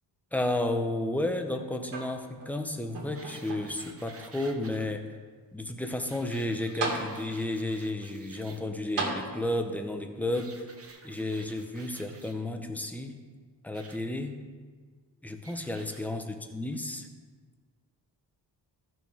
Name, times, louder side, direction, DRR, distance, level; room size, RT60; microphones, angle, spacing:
voice 1, 0.3-5.1 5.5-10.5 11.0-13.2 13.6-14.4 15.2-17.1, left 1 dB, 5° left, 5 dB, 0.7 m, -32 dB
sound 1, 1.9-2.5 2.9-3.9 4.7-4.8 6.3-6.4 6.8-7.6 9.0-9.8 10.9-11.0, right 3 dB, 75° right, 2.3 m, -35 dB
sound 2, 3.1-4.9 5.9-8.6 10.3-12.3 13.7-14.0 15.4-16.0 16.7-16.8, right 3 dB, 35° right, 1.1 m, -51 dB
14.5 x 6.2 x 3.5 m, 1.5 s
wide cardioid pair, 130°, 42 cm